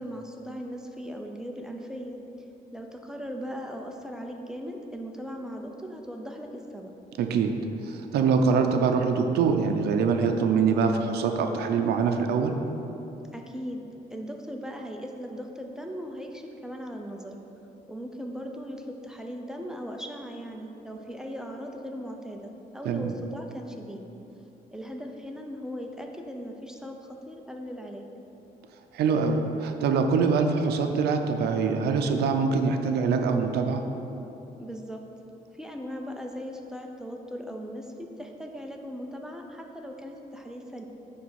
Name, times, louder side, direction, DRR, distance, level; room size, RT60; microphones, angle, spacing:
voice 1, 0.0-2.2 2.7-6.9 13.3-13.8 14.1-17.4 17.9-24.1 24.7-28.1 34.6-35.0 35.5-40.9, equal, 5° right, 2 dB, 0.5 m, -38 dB
voice 2, 7.2-7.5 7.8-12.5 22.8-23.1 28.9-33.8, right 5 dB, 90° right, 5 dB, 0.6 m, -24 dB
9.2 x 3.4 x 6.4 m, 3.0 s
cardioid pair, 140°, 16 cm